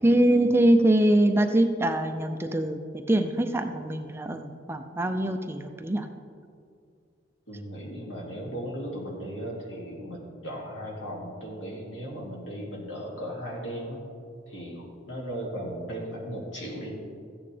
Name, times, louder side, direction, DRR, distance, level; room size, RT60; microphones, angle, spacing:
voice 1, 0.0-2.8 3.1-6.1, right 1 dB, 15° right, 6 dB, 0.5 m, -23 dB
voice 2, 7.5-14.0 14.5-16.9, equal, 85° left, -3 dB, 2.5 m, -36 dB
14.0 x 8.8 x 3.4 m, 2.3 s
head